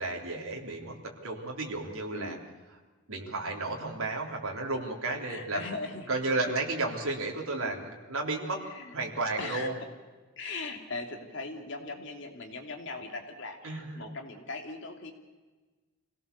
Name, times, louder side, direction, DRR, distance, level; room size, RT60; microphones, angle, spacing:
voice 1, 0.0-2.4 3.1-5.7 6.1-8.6 8.9-9.8 13.6-14.1, right 2 dB, 75° right, 0 dB, 3.5 m, -33 dB
voice 2, 2.1-2.4 5.3-6.1 7.6-7.7 8.5-8.9 9.4-9.9 10.4-15.1, left 3 dB, 55° left, 3 dB, 2.9 m, -39 dB
25.5 x 17.5 x 6.9 m, 1.3 s
head